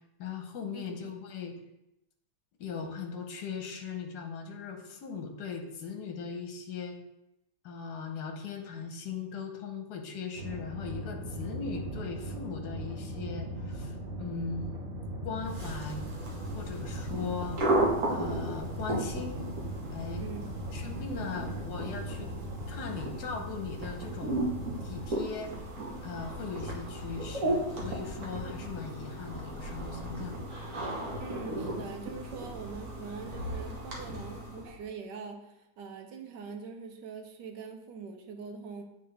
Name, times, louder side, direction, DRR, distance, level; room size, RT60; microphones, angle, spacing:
voice 1, 0.2-1.6 2.6-7.0 7.6-14.8 15.2-16.1 16.5-17.6 18.1-19.5 19.9-20.3 20.7-22.3 22.7-24.4 24.8-25.5 26.0-30.4, left 5 dB, 70° left, 4 dB, 1.4 m, -39 dB
sound 1, 10.4-25.1, right 1 dB, 35° right, 1.1 m, -39 dB
sound 2, 15.4-34.8, right 1 dB, 50° right, 1.4 m, -35 dB
voice 2, 31.2-38.8, right 5 dB, 75° right, 4 dB, 1.4 m, -43 dB
8.5 x 3.7 x 3.3 m, 0.85 s
omnidirectional pair, 1.9 m